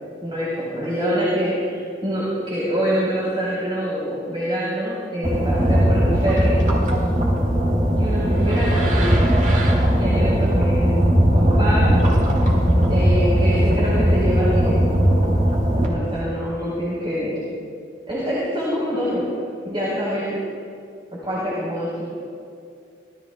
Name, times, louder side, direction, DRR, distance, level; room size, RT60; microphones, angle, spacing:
voice 1, 0.2-6.6 8.0-9.0 9.9-10.9 11.3-12.0 12.9-14.7 15.8-17.4 18.1-19.3 19.6-20.4 21.2-22.0, equal, 30° right, -8 dB, 4.4 m, -25 dB
sound 1, 5.2-15.9, equal, 45° right, 3.8 m, -18 dB
26.0 x 18.0 x 2.3 m, 2.3 s
head